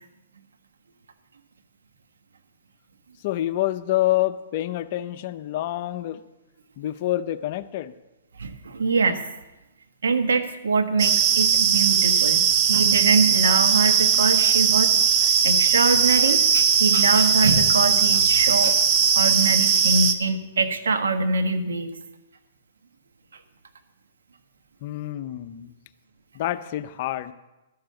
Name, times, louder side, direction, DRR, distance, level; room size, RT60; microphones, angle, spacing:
voice 1, 3.2-6.2 6.8-7.9 24.8-25.7 26.3-27.3, left 14 dB, 50° left, 12 dB, 0.6 m, -27 dB
voice 2, 8.4-9.2 10.0-14.9 15.2-18.8 19.1-21.9, right 4 dB, 85° right, 7 dB, 1.3 m, -23 dB
sound 1, 11.0-20.1, right 7 dB, 35° right, 0.9 m, -19 dB
12.5 x 6.8 x 7.8 m, 1.0 s
hypercardioid pair, 135°, 0 cm